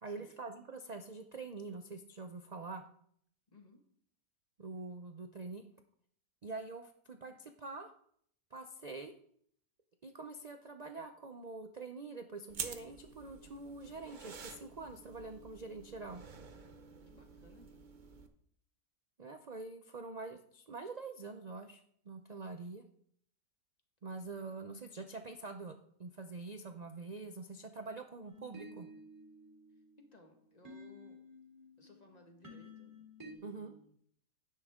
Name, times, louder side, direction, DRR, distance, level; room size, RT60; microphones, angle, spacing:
voice 1, 0.0-2.8 4.6-5.6 6.4-7.9 8.5-9.1 10.0-16.2 19.2-22.8 24.0-28.9 33.4-33.7, right 3 dB, 75° right, 6 dB, 0.3 m, -45 dB
sound 1, 12.5-18.3, right 5 dB, 40° right, 0.7 m, -48 dB
voice 2, 17.1-17.9 29.7-31.2 31.8-33.9, left 1 dB, 25° left, 3 dB, 1.7 m, -61 dB
sound 2, 28.3-33.3, left 1 dB, 10° right, 3.2 m, -54 dB
11.0 x 9.9 x 3.6 m, 0.66 s
omnidirectional pair, 1.7 m